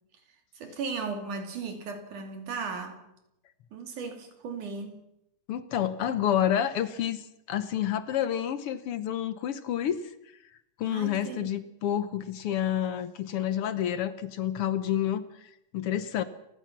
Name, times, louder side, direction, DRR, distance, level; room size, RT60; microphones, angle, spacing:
voice 1, 0.5-3.0 3.7-5.0 10.9-11.5, right 4 dB, 80° right, 5 dB, 4.2 m, -36 dB
voice 2, 5.5-10.0 10.8-16.2, left 10 dB, 65° left, 13 dB, 1.5 m, -29 dB
29.5 x 15.5 x 6.0 m, 0.84 s
omnidirectional pair, 3.5 m